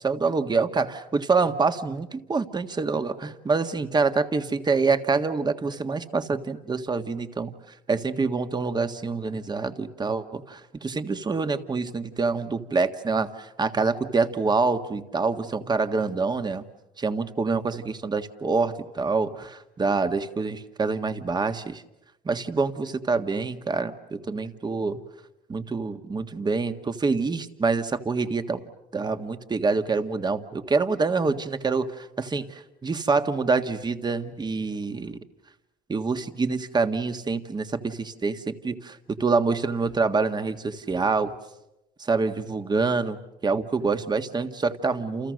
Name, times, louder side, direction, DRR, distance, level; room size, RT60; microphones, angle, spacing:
voice 1, 0.0-7.5 7.9-16.6 17.0-21.8 22.2-25.0 25.5-28.6 28.9-35.2 35.9-41.3 42.0-45.3, right 4 dB, 25° right, 9 dB, 1.6 m, -26 dB
29.0 x 29.0 x 6.5 m, 0.92 s
cardioid pair, 110°, 17 cm